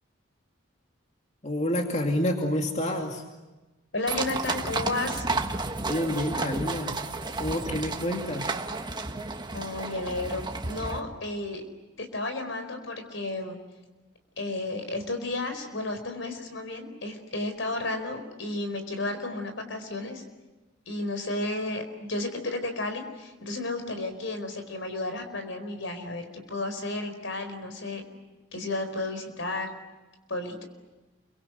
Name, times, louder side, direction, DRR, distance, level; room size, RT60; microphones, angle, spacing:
voice 1, 1.4-3.2 5.9-7.0 7.4-8.5, left 1 dB, 35° left, 2 dB, 2.4 m, -28 dB
voice 2, 3.9-5.2 9.5-11.6 12.0-13.6 14.4-20.2 20.9-28.0 28.5-29.7 30.3-30.6, left 2 dB, 70° left, 7 dB, 4.6 m, -32 dB
sound 1, 4.1-11.0, right 3 dB, 20° right, 1.4 m, -32 dB
29.5 x 24.0 x 8.1 m, 1.1 s
head